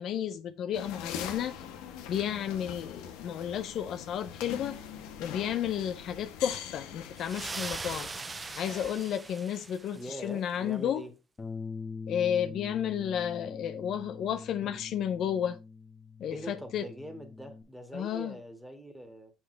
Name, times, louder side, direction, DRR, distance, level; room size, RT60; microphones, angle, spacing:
voice 1, 0.0-1.6 2.1-4.8 5.2-8.1 8.6-11.0 12.1-15.6 16.2-16.9 17.9-18.3, left 9 dB, 60° left, 0.6 m, -32 dB
sound 1, 0.7-8.9, left 8 dB, 85° left, 1.2 m, -43 dB
sound 2, 7.2-10.2, right 4 dB, 25° right, 0.4 m, -40 dB
voice 2, 9.9-11.1 14.6-14.8 16.3-19.3, equal, 5° right, 1.9 m, -43 dB
Bass guitar, 11.4-17.6, left 4 dB, 25° left, 1.3 m, -43 dB
6.4 x 6.2 x 3.3 m
supercardioid pair, 95°, 0 cm